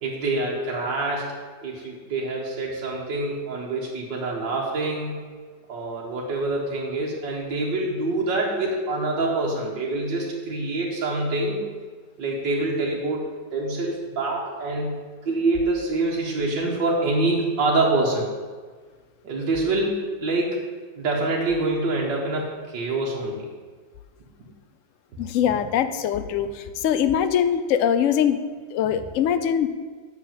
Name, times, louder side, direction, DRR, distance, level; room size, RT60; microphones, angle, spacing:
voice 1, 0.0-1.3 1.6-5.2 5.7-11.6 12.2-15.0 15.2-18.2 19.2-20.6 21.0-23.5, right 2 dB, 75° right, -3 dB, 2.1 m, -26 dB
voice 2, 25.2-28.4 28.7-29.7, left 9 dB, 70° left, 11 dB, 0.7 m, -22 dB
8.2 x 6.3 x 7.4 m, 1.5 s
omnidirectional pair, 1.9 m